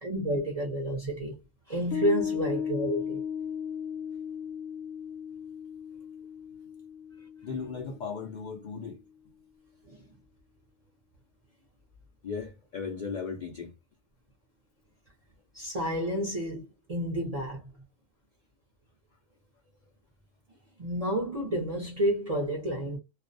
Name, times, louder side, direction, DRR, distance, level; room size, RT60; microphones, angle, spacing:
voice 1, 0.0-1.4 1.7-3.2 9.9-10.0 15.5-17.6 20.8-23.0, equal, 45° right, 0.5 m, -30 dB
Piano, 1.9-8.7, left 7 dB, 90° left, 1.0 m, -36 dB
voice 2, 7.4-9.0 12.2-13.7, left 5 dB, 65° left, 0.4 m, -36 dB
2.4 x 2.0 x 2.5 m
omnidirectional pair, 1.3 m